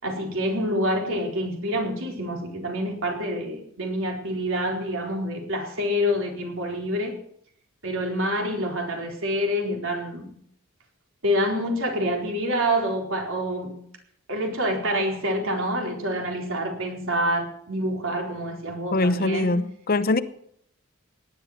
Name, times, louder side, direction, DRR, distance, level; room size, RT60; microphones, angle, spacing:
voice 1, 0.0-7.2 7.8-10.3 11.2-13.8 14.3-19.5, equal, 65° right, 2 dB, 4.3 m, -27 dB
voice 2, 18.9-20.2, left 2 dB, 45° left, 13 dB, 0.9 m, -22 dB
18.0 x 11.0 x 5.8 m, 0.67 s
head